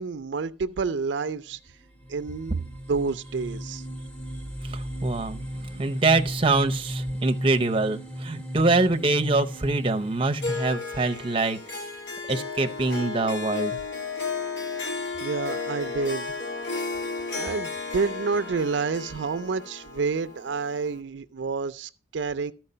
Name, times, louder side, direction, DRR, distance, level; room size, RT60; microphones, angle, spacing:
voice 1, 0.0-1.6 2.1-3.8 15.2-16.4 17.3-22.5, right 4 dB, 70° right, 0.4 m, -29 dB
sound 1, 1.5-1.6 2.0-10.5, equal, 5° left, 0.9 m, -34 dB
voice 2, 4.6-11.6 12.3-13.8, right 3 dB, 30° right, 0.7 m, -25 dB
Harp, 10.4-21.0, left 4 dB, 65° left, 1.5 m, -33 dB
13.5 x 4.6 x 5.5 m
head